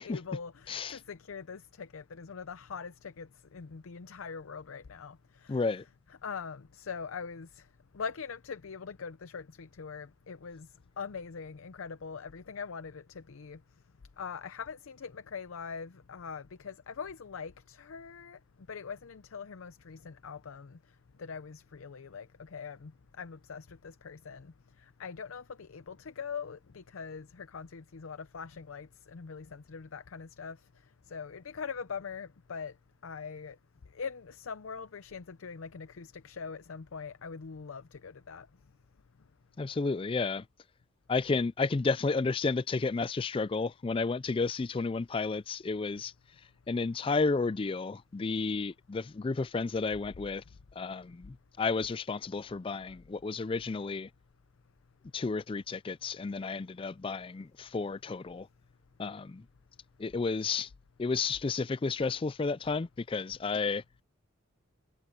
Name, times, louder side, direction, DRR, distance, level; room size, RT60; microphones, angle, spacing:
voice 1, 0.0-5.7 6.2-7.7 7.9-10.7 11.0-13.6 14.2-18.4 18.7-20.8 21.2-22.9 23.2-24.5 24.8-30.6 31.1-32.7 33.0-33.6 33.9-38.5, left 5 dB, 90° left, 0.6 m, -42 dB
voice 2, 0.7-1.0 5.5-5.8 39.6-40.4 41.1-46.1 46.7-50.4 50.8-54.1 55.1-58.5 59.0-59.4 60.0-60.7 61.0-63.8, left 4 dB, 25° left, 0.3 m, -32 dB
head